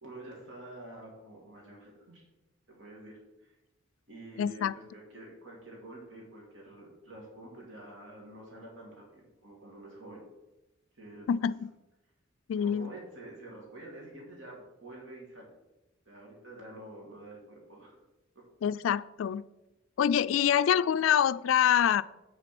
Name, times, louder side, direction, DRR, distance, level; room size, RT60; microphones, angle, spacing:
voice 1, 0.0-2.3 2.7-3.6 4.1-10.2 10.9-11.5 12.6-15.5 16.1-18.0 18.3-18.4, right 1 dB, 70° right, 2.6 m, -48 dB
voice 2, 4.4-4.7 11.3-11.7 12.5-12.9 18.6-19.4 20.0-22.0, left 9 dB, 80° left, 0.3 m, -25 dB
8.3 x 6.4 x 6.0 m
head